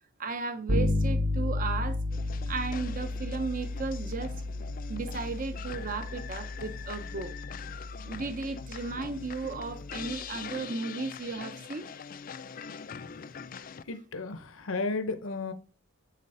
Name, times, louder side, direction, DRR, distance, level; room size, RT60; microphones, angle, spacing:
voice 1, 0.2-2.0 2.5-4.3 4.9-7.3 8.1-11.8, right 4 dB, 40° right, 0.7 m, -35 dB
Bass guitar, 0.7-10.4, left 2 dB, 65° right, 1.0 m, -33 dB
sound 1, 2.1-13.8, left 6 dB, 40° left, 0.4 m, -43 dB
voice 2, 13.9-15.5, left 3 dB, 70° left, 0.8 m, -33 dB
7.4 x 5.0 x 4.2 m
head